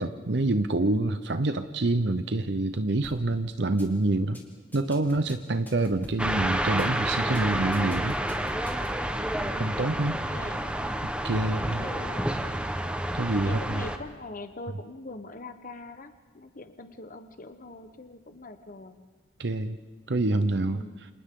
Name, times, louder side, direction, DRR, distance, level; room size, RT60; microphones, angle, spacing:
voice 1, 0.0-4.4 4.7-8.2 9.6-10.2 11.2-11.8 13.1-13.8 19.4-19.8 20.1-20.8, right 2 dB, 70° right, 9 dB, 0.8 m, -26 dB
sound 1, 3.0-3.3 3.6-3.9 4.2-4.4 4.7-6.3 6.6-6.9 7.2-7.4 7.7-9.0, left 1 dB, 10° left, 3.0 m, -46 dB
sound 2, 6.2-14.0, right 1 dB, 5° right, 1.1 m, -29 dB
voice 2, 9.4-10.7 11.3-12.6 13.4-19.0 20.7-21.0, left 2 dB, 50° left, 9 dB, 1.1 m, -43 dB
29.0 x 27.0 x 3.8 m, 1.3 s
head